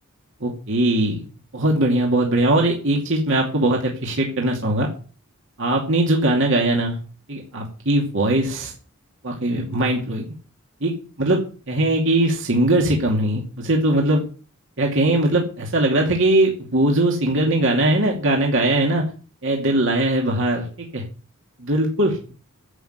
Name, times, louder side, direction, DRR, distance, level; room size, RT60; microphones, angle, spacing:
voice 1, 0.4-1.3 1.5-4.9 5.6-7.0 7.3-8.7 9.2-10.3 10.8-11.4 11.7-14.2 14.8-19.0 19.4-21.0 21.6-22.3, right 1 dB, 60° right, 0 dB, 2.5 m, -20 dB
11.0 x 7.7 x 8.2 m, 0.38 s
head